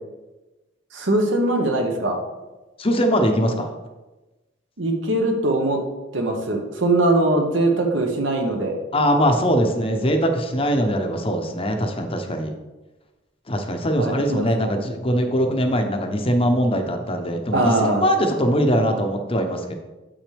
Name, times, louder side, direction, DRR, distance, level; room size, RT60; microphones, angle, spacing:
voice 1, 0.9-2.2 4.8-5.8 6.1-8.7 14.0-14.5 17.5-18.0, right 2 dB, 70° right, 3 dB, 1.2 m, -21 dB
voice 2, 2.8-3.7 8.9-12.5 13.5-19.7, equal, 30° left, 5 dB, 0.8 m, -21 dB
7.8 x 6.1 x 3.4 m, 1.1 s
head